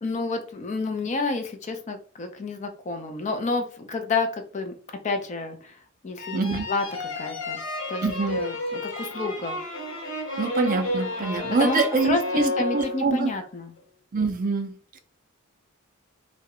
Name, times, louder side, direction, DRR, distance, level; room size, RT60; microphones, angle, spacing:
voice 1, 0.0-4.7 5.0-5.7 6.0-6.4 6.7-6.8 7.2-7.6 7.9-9.6 11.2-13.7, left 3 dB, 35° left, 6 dB, 0.4 m, -29 dB
sound 1, 6.2-13.4, left 1 dB, 85° left, 1.2 m, -31 dB
voice 2, 6.3-6.7 8.0-8.4 10.4-12.4 12.7-13.3 14.1-15.0, right 4 dB, 40° right, 7 dB, 0.4 m, -25 dB
2.3 x 2.0 x 2.8 m, 0.40 s
head